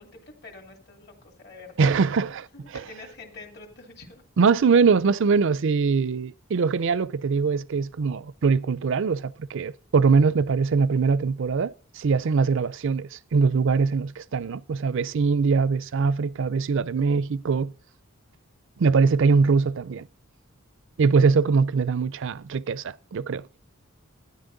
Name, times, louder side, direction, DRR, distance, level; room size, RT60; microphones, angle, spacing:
voice 1, 0.0-2.2 2.5-4.2, left 3 dB, 55° left, 2.6 m, -46 dB
voice 2, 1.8-2.5 4.4-17.7 18.8-20.1 21.0-23.4, right 5 dB, 65° right, 0.5 m, -22 dB
12.5 x 10.0 x 4.0 m
head